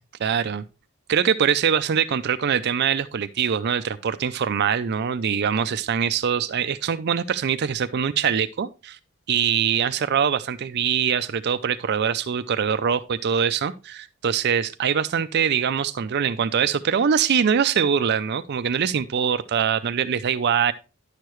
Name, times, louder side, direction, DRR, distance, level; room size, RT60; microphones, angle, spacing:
voice 1, 0.2-0.6 1.1-9.0 9.3-20.7, right 7 dB, 55° right, 0.4 m, -23 dB
10.5 x 6.6 x 3.0 m
head